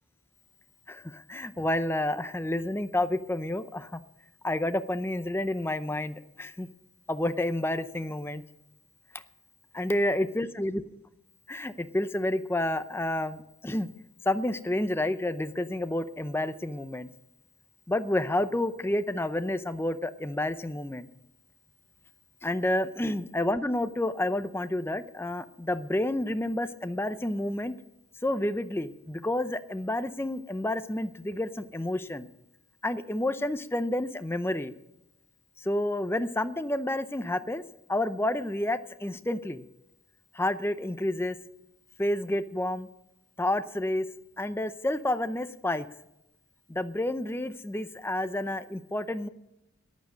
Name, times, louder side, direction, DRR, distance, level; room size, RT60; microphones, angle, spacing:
voice 1, 0.9-4.0 4.4-6.7 7.1-8.4 9.1-9.2 9.7-10.8 11.5-13.9 14.2-17.1 17.9-21.1 22.4-27.7 28.2-32.3 32.8-34.7 35.6-37.6 37.9-39.6 40.3-41.4 42.0-42.9 43.4-44.0 44.4-45.9 46.7-49.3, left 1 dB, 10° left, 11 dB, 0.6 m, -29 dB
13.5 x 10.5 x 6.2 m, 0.92 s
head